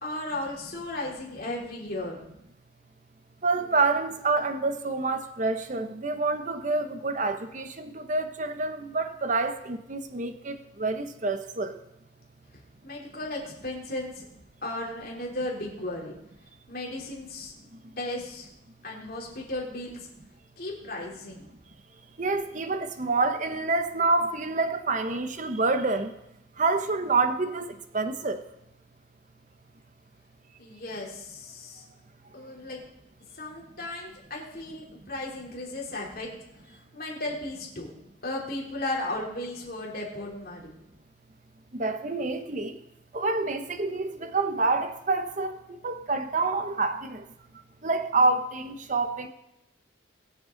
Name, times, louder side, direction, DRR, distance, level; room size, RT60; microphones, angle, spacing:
voice 1, 0.0-2.2 12.8-14.2 14.6-16.1 16.7-17.5 18.0-18.5 18.8-20.0 20.6-21.5 30.6-31.8 32.3-32.8 33.4-36.3 36.9-37.9 38.2-40.6, left 1 dB, 50° left, -2 dB, 3.3 m, -35 dB
voice 2, 3.4-11.8 22.2-26.1 26.6-28.4 41.7-42.8 43.1-45.6 45.8-47.2 47.8-49.3, right 3 dB, 40° right, 8 dB, 0.8 m, -27 dB
21.0 x 7.7 x 3.8 m, 0.85 s
head